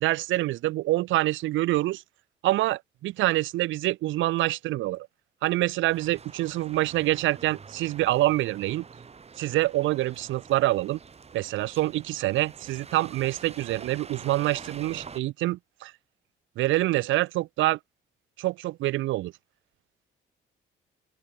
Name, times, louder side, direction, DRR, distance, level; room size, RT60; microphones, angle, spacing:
voice 1, 0.0-2.0 2.4-5.1 5.4-8.8 9.4-11.0 11.3-15.9 16.6-17.8 18.4-19.3, right 17 dB, 75° right, 0.4 m, -26 dB
sound 1, 5.9-15.2, right 5 dB, 30° right, 1.3 m, -46 dB
open air
cardioid pair, 90°, 20 cm